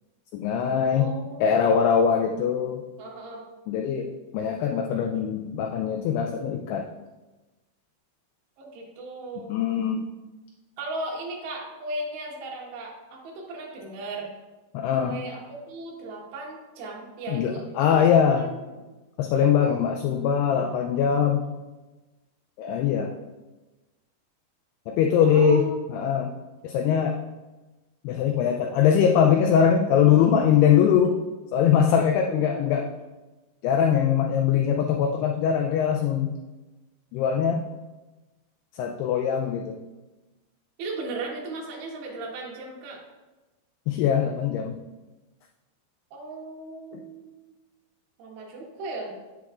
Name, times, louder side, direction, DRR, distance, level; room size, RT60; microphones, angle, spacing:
voice 1, 0.3-1.1 1.4-2.8 3.7-6.9 9.5-10.0 14.7-15.2 17.3-18.5 19.2-21.5 22.6-23.1 24.9-25.6 25.9-26.3 26.6-27.2 28.0-31.2 31.5-32.9 33.6-36.3 37.1-37.7 38.7-39.8 43.9-44.8 46.9-47.0, left 8 dB, 90° left, 3 dB, 2.3 m, -22 dB
voice 2, 0.9-1.6 3.0-3.4 8.6-9.6 10.8-14.3 14.9-17.6 17.9-18.8 25.2-25.7 32.1-32.6 40.8-43.0 46.1-47.3 48.2-49.2, right 2 dB, 75° right, -2 dB, 3.3 m, -36 dB
8.4 x 7.8 x 2.4 m, 1.2 s
omnidirectional pair, 5.1 m